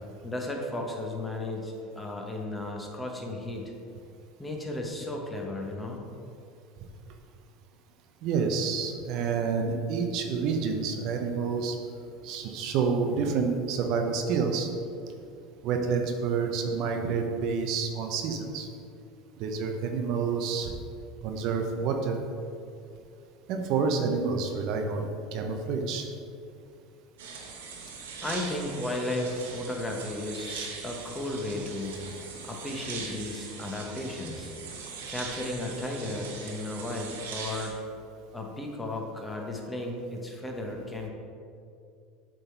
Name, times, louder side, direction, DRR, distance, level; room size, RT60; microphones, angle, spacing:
voice 1, 0.2-3.6 4.4-6.0 28.2-31.9 32.4-34.5 35.1-37.8 38.3-41.1, left 1 dB, 10° left, 0 dB, 1.1 m, -34 dB
voice 2, 8.2-11.8 12.2-14.7 15.6-18.7 19.4-20.7 21.2-22.2 23.5-26.1 32.3-32.4, right 5 dB, 60° right, 4 dB, 0.7 m, -28 dB
sound 1, 27.2-37.7, right 5 dB, 90° right, 1.0 m, -41 dB
7.8 x 3.8 x 4.5 m, 2.5 s
supercardioid pair, 110°, 0 cm